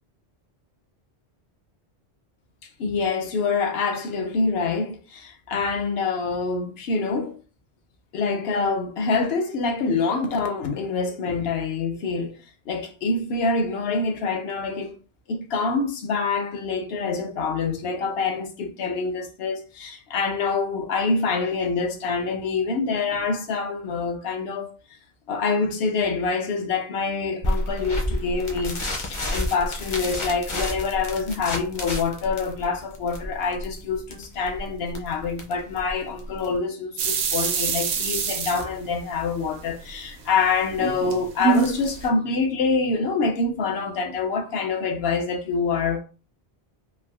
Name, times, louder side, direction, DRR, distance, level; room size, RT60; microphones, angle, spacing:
voice 1, 2.8-7.4 8.1-12.4 12.7-14.9 15.3-24.7 25.3-46.0, left 4 dB, 70° left, 0.8 m, -26 dB
sound 1, 27.4-36.6, left 1 dB, 35° left, 0.5 m, -30 dB
sound 2, 37.0-39.4 39.8-42.1, right 7 dB, 80° right, 0.9 m, -26 dB
3.5 x 2.3 x 2.3 m
omnidirectional pair, 1.1 m